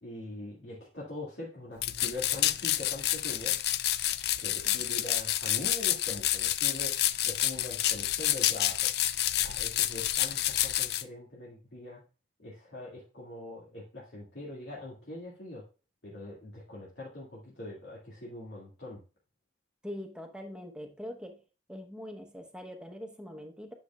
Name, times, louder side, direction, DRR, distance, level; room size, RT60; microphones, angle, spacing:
voice 1, 0.0-3.6 4.4-6.9 7.2-8.9 9.4-12.0 12.4-15.6 16.0-19.0, left 1 dB, 80° left, -6 dB, 2.0 m, -42 dB
sound 1, 1.8-11.0, left 13 dB, 60° left, 0.4 m, -29 dB
voice 2, 19.8-21.4 21.7-23.7, equal, 5° right, 4 dB, 0.9 m, -43 dB
9.9 x 6.3 x 2.3 m, 0.33 s
head